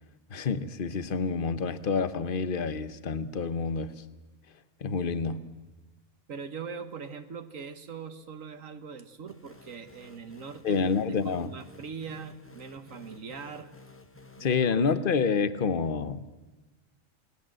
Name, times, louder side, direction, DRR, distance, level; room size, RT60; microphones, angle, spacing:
voice 1, 0.3-4.0 4.8-5.5 10.6-11.5 14.4-16.5, left 5 dB, 45° left, 13 dB, 1.1 m, -28 dB
voice 2, 6.3-10.9 11.2-13.7 14.4-14.8, right 6 dB, 70° right, 8 dB, 1.5 m, -41 dB
sound 1, 9.3-14.4, left 2 dB, 10° left, 0.9 m, -53 dB
29.0 x 19.5 x 7.7 m, 1.1 s
omnidirectional pair, 1.4 m